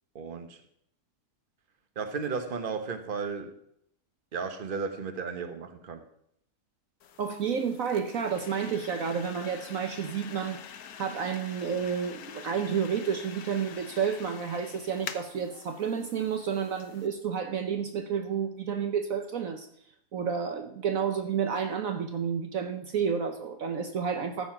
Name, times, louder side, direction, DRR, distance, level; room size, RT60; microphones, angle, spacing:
voice 1, 0.1-0.6 1.9-3.5 4.3-6.0, right 5 dB, 35° right, 8 dB, 1.3 m, -34 dB
sound 1, 7.0-17.1, left 8 dB, 75° left, 1.4 m, -46 dB
voice 2, 7.2-10.7 11.0-19.7 20.1-24.5, right 7 dB, 60° right, 7 dB, 1.2 m, -30 dB
14.5 x 7.0 x 5.9 m, 0.70 s
omnidirectional pair, 1.7 m